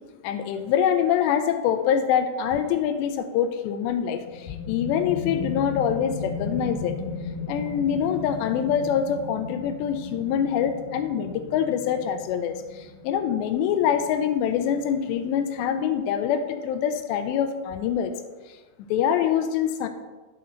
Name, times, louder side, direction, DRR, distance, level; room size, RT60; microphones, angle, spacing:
voice 1, 0.2-7.0 7.5-18.1 18.8-19.9, left 8 dB, 85° left, 8 dB, 2.9 m, -25 dB
sound 1, 4.2-15.5, left 4 dB, 60° left, 2.4 m, -36 dB
10.5 x 7.8 x 4.4 m, 1.3 s
omnidirectional pair, 5.0 m